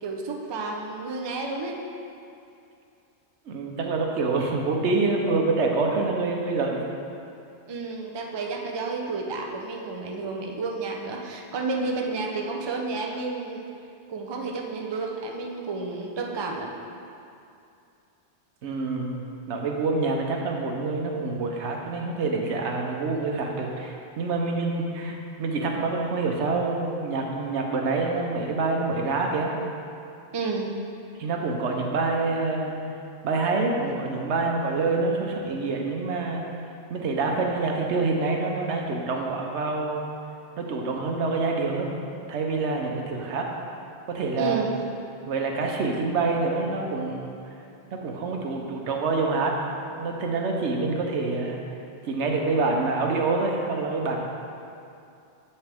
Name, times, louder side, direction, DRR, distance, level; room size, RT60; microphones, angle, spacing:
voice 1, 0.0-1.8 7.7-13.6 14.1-16.7 30.3-30.7 44.4-44.7, right 3 dB, 35° right, 1 dB, 0.4 m, -31 dB
voice 2, 3.5-6.8 18.6-29.5 31.2-32.7 33.2-36.4 36.9-40.1 40.6-41.9 42.3-43.5 44.1-44.7 45.3-47.5 47.9-49.6 50.0-51.6 52.1-54.2, right 3 dB, 90° right, 1 dB, 1.1 m, -26 dB
7.3 x 5.6 x 3.4 m, 2.6 s
omnidirectional pair, 1.1 m